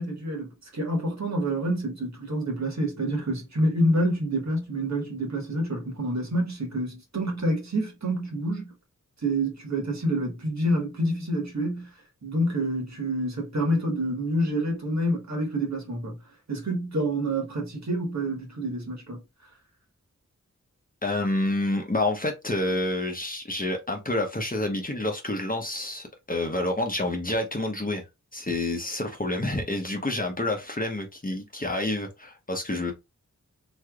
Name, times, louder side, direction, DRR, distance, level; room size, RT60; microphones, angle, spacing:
voice 1, 0.0-8.7 9.2-11.9 12.2-16.2 16.5-19.2, right 1 dB, 55° right, 1.5 m, -27 dB
voice 2, 21.0-28.0 28.3-32.9, left 1 dB, 25° left, 0.9 m, -28 dB
3.1 x 3.1 x 2.4 m
cardioid pair, 45°, 32 cm